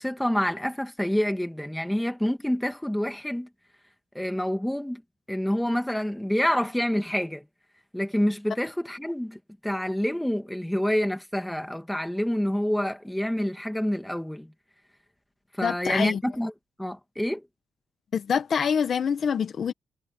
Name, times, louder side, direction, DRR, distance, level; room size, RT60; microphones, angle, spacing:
voice 1, 0.0-3.5 4.1-5.0 5.3-7.5 7.9-14.5 15.5-16.5 16.8-17.4, equal, 5° left, 1.9 m, -27 dB
voice 2, 15.6-16.2 18.1-19.7, left 7 dB, 40° left, 1.0 m, -25 dB
cardioid pair, 170°, 0 cm